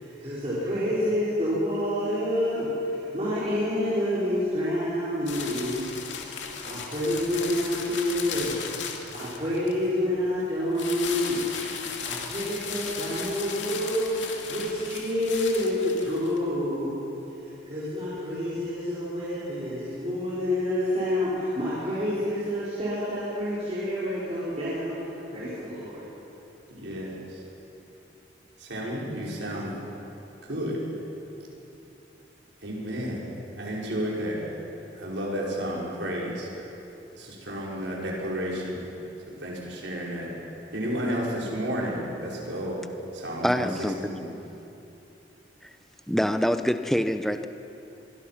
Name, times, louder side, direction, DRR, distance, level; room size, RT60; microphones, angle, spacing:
voice 1, 0.0-8.7 8.9-11.4 12.0-17.1 17.4-26.1, left 1 dB, 35° right, -10 dB, 4.9 m, -28 dB
sound 1, 5.3-9.8 10.7-16.4, left 6 dB, 80° left, 2.5 m, -36 dB
voice 2, 26.8-27.4 28.6-29.7 30.4-30.8 32.6-33.2 33.6-34.5 34.9-36.5 37.1-38.9 39.3-40.3 40.7-42.8 43.1-43.7 44.0-44.2, equal, 80° right, -3 dB, 5.4 m, -32 dB
voice 3, 43.4-44.1 45.6-45.7 46.1-47.5, equal, ahead, 8 dB, 0.7 m, -25 dB
24.5 x 23.5 x 5.9 m, 2.9 s
head